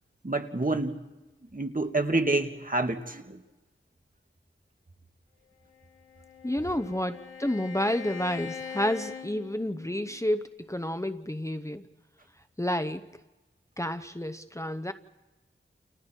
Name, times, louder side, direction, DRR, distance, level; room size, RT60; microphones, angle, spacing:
voice 1, 0.2-1.0 1.5-3.4, right 2 dB, 40° right, 5 dB, 2.1 m, -28 dB
Bowed string instrument, 5.7-10.2, left 7 dB, 70° left, 3.4 m, -42 dB
voice 2, 6.4-11.9 12.6-13.1 13.8-14.9, left 1 dB, 15° left, 10 dB, 0.9 m, -30 dB
30.0 x 29.5 x 4.6 m, 1.1 s
wide cardioid pair, 55°, 21 cm